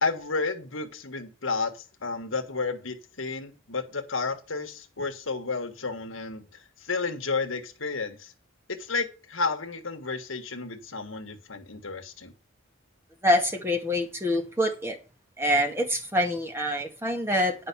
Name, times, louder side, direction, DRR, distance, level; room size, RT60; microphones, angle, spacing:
voice 1, 0.0-6.5 6.8-8.3 8.8-12.3, left 4 dB, 70° left, 1.6 m, -31 dB
voice 2, 13.2-15.0 15.4-17.6, equal, 10° right, 1.8 m, -25 dB
10.0 x 5.5 x 6.9 m
head